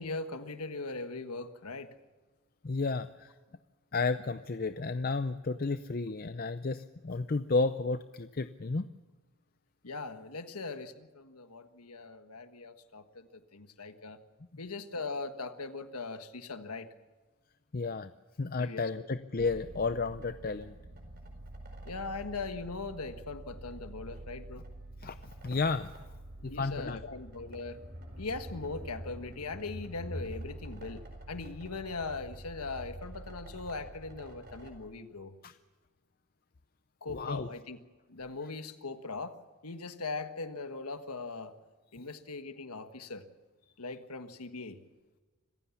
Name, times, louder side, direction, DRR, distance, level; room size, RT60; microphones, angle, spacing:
voice 1, 0.0-1.9 9.8-14.2 14.6-16.9 18.6-18.8 21.8-24.6 26.4-27.8 28.2-35.3 37.0-37.8 38.1-39.4 39.6-41.5 41.9-43.2 43.8-44.8, left 3 dB, 90° left, 9 dB, 1.4 m, -40 dB
voice 2, 2.6-3.3 3.9-8.9 17.7-18.1 18.4-20.8 25.0-25.2 25.4-25.9 26.4-27.2 35.4-35.5 37.1-37.5, left 3 dB, 40° left, 11 dB, 0.6 m, -32 dB
sound 1, 19.4-34.7, right 1 dB, 45° right, 4.6 m, -46 dB
26.0 x 15.5 x 7.1 m, 1.3 s
head